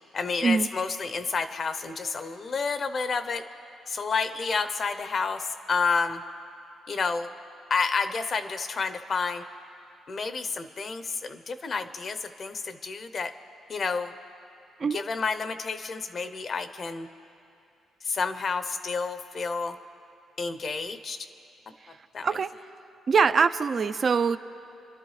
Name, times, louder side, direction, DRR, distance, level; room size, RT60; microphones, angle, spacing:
voice 1, 0.1-3.4 3.9-6.2 6.9-7.3 7.7-9.4 10.1-13.3 13.7-14.1 14.9-17.1 18.0-19.8 20.4-21.3 22.1-22.3, left 4 dB, 45° left, 10 dB, 0.7 m, -30 dB
voice 2, 23.1-24.4, right 5 dB, 45° right, 11 dB, 0.4 m, -23 dB
30.0 x 11.5 x 3.2 m, 2.6 s
cardioid pair, 90°, 0 cm